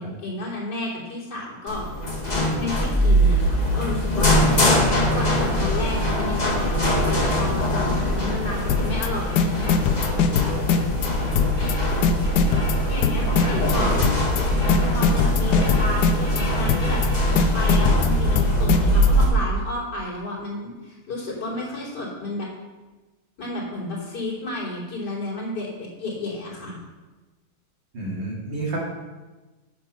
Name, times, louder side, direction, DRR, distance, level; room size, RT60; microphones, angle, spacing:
voice 1, 0.0-1.8 2.6-4.4 5.1-9.7 12.6-14.0 14.9-17.3 17.5-22.5 23.4-26.8, left 1 dB, 50° left, -6 dB, 3.8 m, -32 dB
sound 1, 1.7-19.2, equal, 20° left, 2.0 m, -22 dB
sound 2, 8.7-9.1 9.4-11.1 11.4-11.7 12.0-13.7 14.0-14.4 14.7-16.4 16.7-17.1 17.4-19.1, left 7 dB, 70° left, 1.1 m, -21 dB
voice 2, 13.3-14.0 27.9-28.8, right 2 dB, 60° right, -4 dB, 3.2 m, -30 dB
9.1 x 8.6 x 5.7 m, 1.2 s
omnidirectional pair, 2.3 m